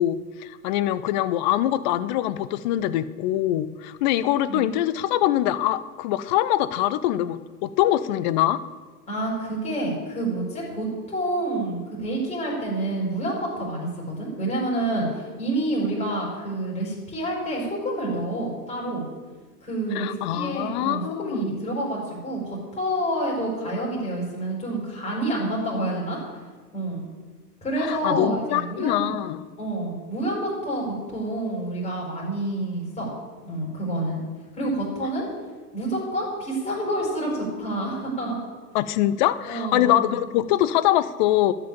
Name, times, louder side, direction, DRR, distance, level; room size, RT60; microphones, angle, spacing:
voice 1, 0.0-8.6 19.9-21.5 27.9-29.4 38.7-41.5, left 13 dB, 30° left, 16 dB, 0.5 m, -23 dB
voice 2, 9.1-19.0 19.6-26.2 26.7-27.0 27.6-29.1 29.6-33.1 33.4-34.2 34.5-35.3 35.7-38.4 39.5-40.1, right 1 dB, 15° left, -5 dB, 5.2 m, -28 dB
13.0 x 6.0 x 9.0 m, 1.3 s
figure-of-eight pair, 100°, 48 cm